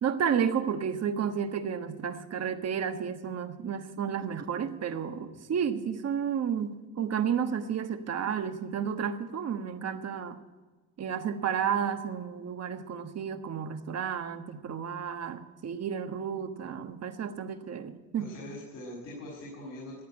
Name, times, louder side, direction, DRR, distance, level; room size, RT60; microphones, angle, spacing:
voice 1, 0.0-10.4 11.0-18.3, right 7 dB, 45° right, 8 dB, 1.4 m, -32 dB
voice 2, 18.2-20.0, left 1 dB, 65° left, -5 dB, 5.6 m, -42 dB
14.5 x 9.4 x 8.9 m, 1.2 s
cardioid pair, 95°, 34 cm